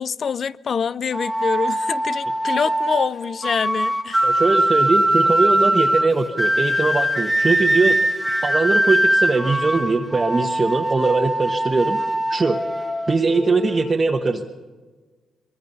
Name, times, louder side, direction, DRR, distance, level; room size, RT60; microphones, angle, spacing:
voice 1, 0.0-4.4, left 6 dB, 40° left, 0.5 m, -25 dB
sound 1, 1.1-13.9, right 1 dB, 5° right, 1.1 m, -21 dB
voice 2, 4.2-8.0 8.4-12.0 12.3-12.6 13.1-14.5, right 3 dB, 25° right, 1.2 m, -21 dB
24.0 x 22.5 x 5.5 m
cardioid pair, 135°, 0 cm